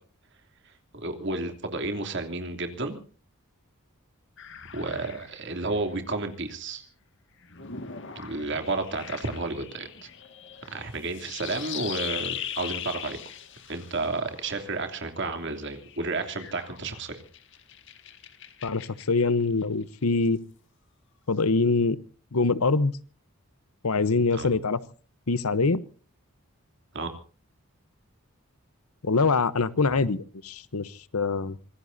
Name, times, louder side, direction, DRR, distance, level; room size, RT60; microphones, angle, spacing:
voice 1, 0.9-3.0 4.7-6.8 8.1-10.1 10.7-13.2 13.7-17.2 24.3-24.5 26.9-27.1, right 3 dB, 55° right, 5 dB, 3.0 m, -31 dB
sound 1, 4.4-6.2 7.4-15.0 15.5-19.4, left 8 dB, 55° left, 1.9 m, -40 dB
voice 2, 18.6-20.4 21.3-22.0 22.3-22.9 23.8-24.8 25.3-25.8 29.0-31.6, left 3 dB, 80° left, 16 dB, 0.9 m, -24 dB
26.0 x 20.0 x 2.7 m, 0.39 s
head